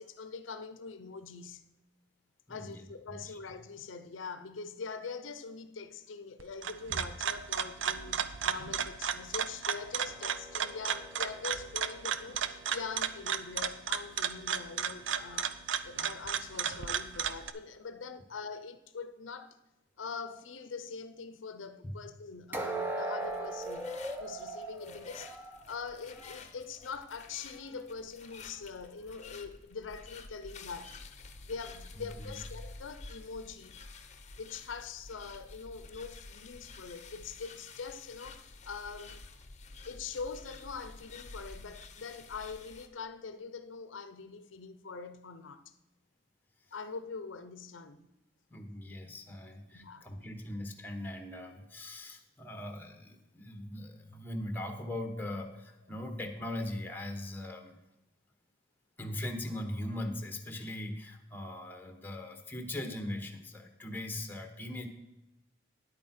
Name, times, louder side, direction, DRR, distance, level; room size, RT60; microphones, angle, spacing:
voice 1, 0.0-1.7 2.5-19.6 20.0-25.4 25.7-31.0 31.4-33.8 34.4-39.2 39.8-45.6 46.7-48.1 49.7-50.1, left 5 dB, 85° left, 0.6 m, -43 dB
voice 2, 2.5-3.4 21.8-21.9 32.0-32.3 48.5-57.8 59.0-64.9, left 1 dB, 10° left, 1.1 m, -40 dB
sound 1, 6.4-17.5, right 8 dB, 80° right, 0.6 m, -34 dB
sound 2, 10.1-13.2 22.5-26.4 26.8-27.0 27.6-27.7, right 1 dB, 10° right, 0.9 m, -40 dB
sound 3, 23.2-42.9, left 3 dB, 40° left, 0.8 m, -50 dB
10.0 x 8.6 x 4.2 m
head